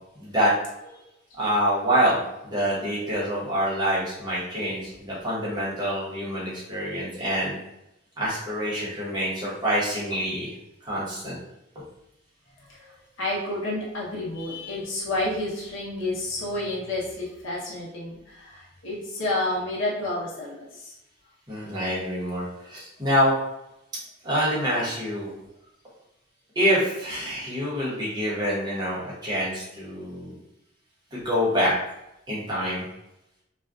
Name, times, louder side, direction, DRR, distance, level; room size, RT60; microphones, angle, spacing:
voice 1, 0.2-0.5 1.4-7.6 8.2-10.5 10.8-11.4 21.5-23.3 24.2-25.3 26.5-30.4 31.1-31.7 32.3-32.8, equal, 20° right, -8 dB, 0.9 m, -26 dB
voice 2, 12.7-21.0, left 1 dB, 70° left, -5 dB, 0.8 m, -30 dB
2.5 x 2.3 x 2.3 m, 0.87 s
head